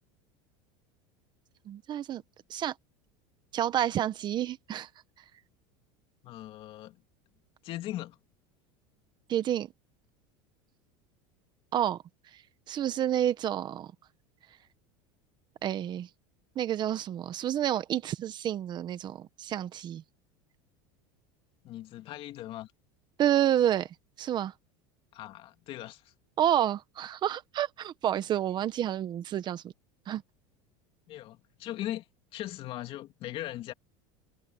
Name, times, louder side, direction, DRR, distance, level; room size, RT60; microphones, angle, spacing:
voice 1, 1.7-2.2 2.5-2.7 3.5-4.9 9.3-9.7 11.7-12.0 12.7-13.9 15.6-16.1 16.5-20.0 23.2-23.9 24.2-24.5 26.4-29.7 30.1-30.2, right 11 dB, 35° right, 1.2 m, -29 dB
voice 2, 6.2-7.0 7.6-8.2 21.6-22.7 25.1-26.1 31.1-32.0 32.3-33.7, left 14 dB, 45° left, 2.8 m, -39 dB
supercardioid pair, 135°, 13 cm